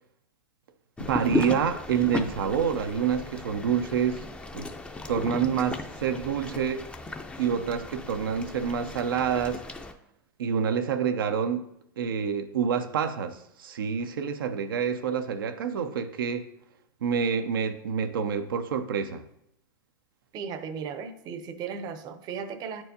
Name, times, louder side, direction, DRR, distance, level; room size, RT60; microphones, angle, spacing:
sound 1, 1.0-9.9, left 2 dB, 10° left, 0.5 m, -36 dB
voice 1, 1.0-4.2 4.5-4.7 5.1-6.9 7.4-9.6 10.4-11.7 12.0-16.5 17.0-19.2, right 7 dB, 80° right, 0.5 m, -27 dB
voice 2, 20.3-22.8, right 6 dB, 40° right, 0.6 m, -36 dB
8.4 x 4.5 x 2.7 m
hypercardioid pair, 105°, 11 cm